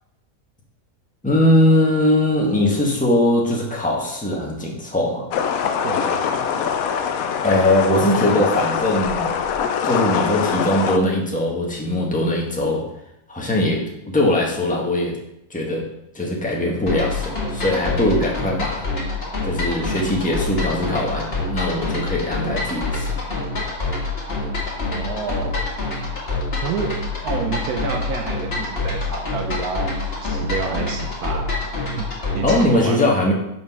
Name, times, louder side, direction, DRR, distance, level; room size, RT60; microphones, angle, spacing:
voice 1, 1.2-5.3 7.4-9.3 9.8-12.8 13.3-15.2 15.5-15.9 16.1-18.8 19.4-23.1 32.4-33.3, left 1 dB, 5° left, -2 dB, 1.2 m, -20 dB
sound 1, 5.3-11.0, left 7 dB, 70° left, 1.0 m, -23 dB
voice 2, 5.8-6.2 24.9-25.6 26.6-31.5 32.0-33.0, right 6 dB, 75° right, 4 dB, 1.2 m, -29 dB
sound 2, 16.9-32.7, left 3 dB, 40° left, 2.0 m, -26 dB
5.7 x 5.3 x 5.4 m, 0.82 s
omnidirectional pair, 1.6 m